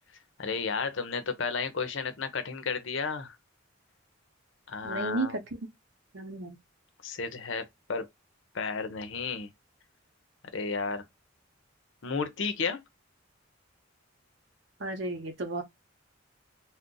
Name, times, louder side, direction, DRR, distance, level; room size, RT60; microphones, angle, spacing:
voice 1, 0.4-3.4 4.7-5.4 7.0-8.1 8.5-9.5 10.5-11.1 12.0-12.8, left 5 dB, 70° left, 0.6 m, -32 dB
voice 2, 4.8-5.6 6.1-6.6 14.8-15.6, right 2 dB, 60° right, 0.8 m, -33 dB
2.5 x 2.1 x 3.7 m
head